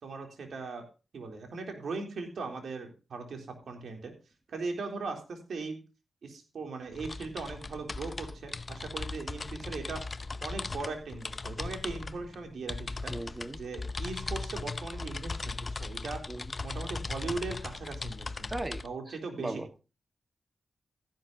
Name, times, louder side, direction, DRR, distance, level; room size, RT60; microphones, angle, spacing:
voice 1, 0.0-0.8 1.1-4.2 4.5-5.8 6.2-10.0 10.4-13.1 13.6-16.2 16.6-18.5 18.8-19.6, right 3 dB, 75° right, 3.7 m, -39 dB
sound 1, 6.9-18.9, left 3 dB, 40° left, 0.8 m, -38 dB
voice 2, 13.1-13.6 16.3-16.5 18.5-19.7, right 2 dB, 25° right, 1.8 m, -38 dB
15.0 x 11.5 x 2.9 m
cardioid pair, 55°, 0 cm